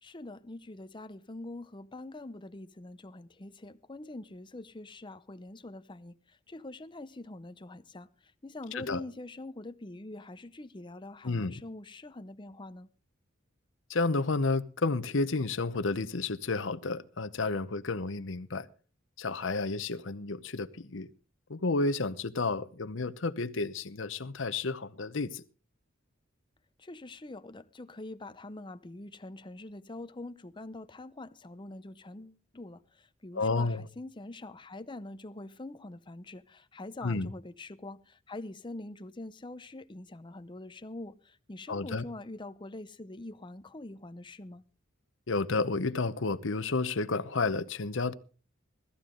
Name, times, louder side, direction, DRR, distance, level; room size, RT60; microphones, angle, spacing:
voice 1, 0.0-12.9 26.8-44.6, left 2 dB, 25° left, 0.7 m, -44 dB
voice 2, 13.9-18.7 19.2-21.1 21.5-25.4 33.3-33.9 37.0-37.3 41.7-42.0 45.3-48.1, left 3 dB, 70° left, 0.8 m, -31 dB
16.5 x 14.0 x 3.8 m
head